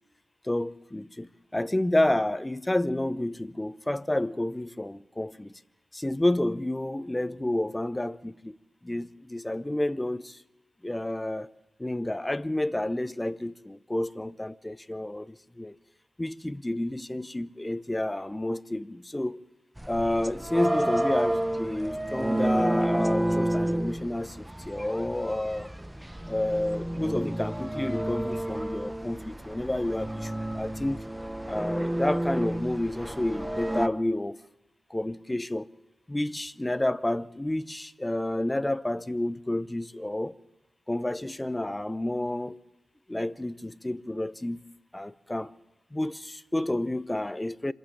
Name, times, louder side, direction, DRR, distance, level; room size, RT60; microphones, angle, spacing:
voice 1, 0.4-5.5 5.9-8.6 8.8-10.4 10.8-11.5 11.8-15.8 16.2-19.4 19.9-25.7 26.3-31.0 31.5-34.4 34.9-35.7 36.1-40.3 40.9-42.6 43.1-44.6 44.9-45.5 45.9-47.7, left 1 dB, 15° left, 0.8 m, -30 dB
sound 1, 19.8-33.9, right 1 dB, 10° right, 1.1 m, -30 dB
26.5 x 14.5 x 7.3 m
supercardioid pair, 40°, 0 cm